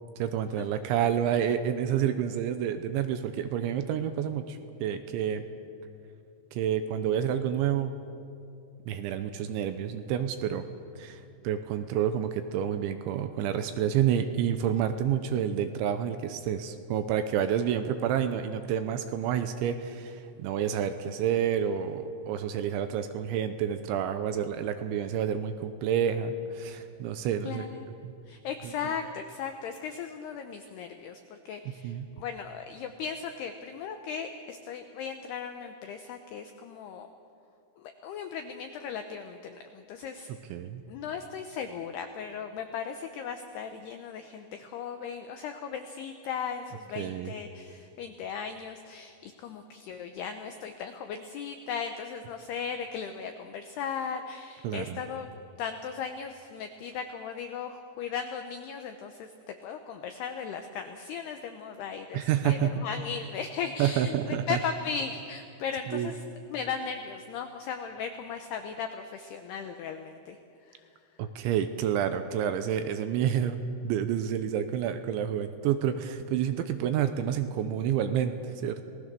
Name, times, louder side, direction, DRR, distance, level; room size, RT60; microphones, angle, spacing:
voice 1, 0.2-5.4 6.5-7.9 8.9-10.7 11.0-27.7 28.0-28.1 28.6-28.7 31.8-32.1 40.5-40.8 47.0-47.3 54.6-55.0 62.1-62.9 63.8-64.6 65.9-66.1 71.2-73.6 73.8-78.8, right 9 dB, 80° right, 9 dB, 2.9 m, -29 dB
voice 2, 27.5-27.9 28.3-37.1 37.8-40.3 40.9-55.3 55.6-59.3 59.6-66.2 66.5-70.4 70.7-70.8, left 6 dB, 80° left, 6 dB, 2.3 m, -37 dB
28.0 x 19.0 x 6.8 m, 2.6 s
omnidirectional pair, 5.9 m